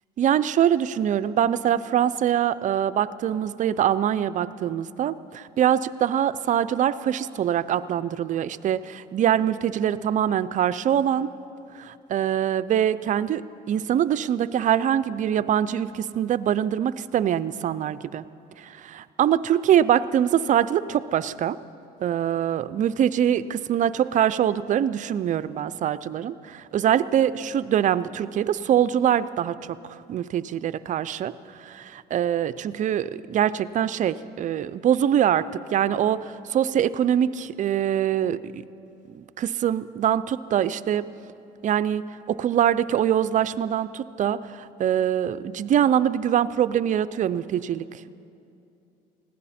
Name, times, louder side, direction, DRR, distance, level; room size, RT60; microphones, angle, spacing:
voice 1, 0.2-11.3 11.7-18.2 18.6-21.6 22.0-29.6 30.1-31.3 31.6-38.6 39.1-41.1 41.6-48.1, right 10 dB, 50° right, 15 dB, 0.5 m, -24 dB
21.0 x 16.0 x 4.3 m, 2.7 s
cardioid pair, 110°, 17 cm